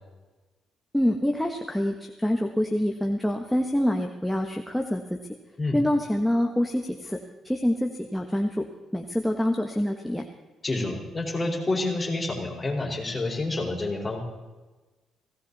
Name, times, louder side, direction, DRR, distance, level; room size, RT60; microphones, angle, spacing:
voice 1, 0.9-5.2 5.7-8.7 8.9-10.2, left 1 dB, 5° left, 2 dB, 1.4 m, -26 dB
voice 2, 10.6-14.2, left 2 dB, 20° left, -1 dB, 5.0 m, -28 dB
17.5 x 17.5 x 4.2 m, 1.2 s
cardioid pair, 90°, 0 cm